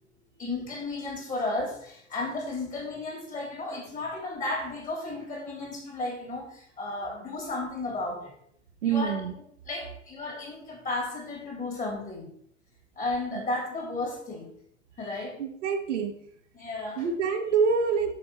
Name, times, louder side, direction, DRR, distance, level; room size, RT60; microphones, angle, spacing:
voice 1, 0.3-8.3 8.8-9.2 9.7-12.3 12.9-14.5 15.0-15.4 16.5-17.0, left 2 dB, 20° left, -1 dB, 3.2 m, -33 dB
voice 2, 8.8-9.3 15.4-16.1 17.0-18.2, right 6 dB, 65° right, 4 dB, 1.2 m, -26 dB
7.2 x 5.9 x 4.1 m, 0.66 s
figure-of-eight pair, 100°, 39 cm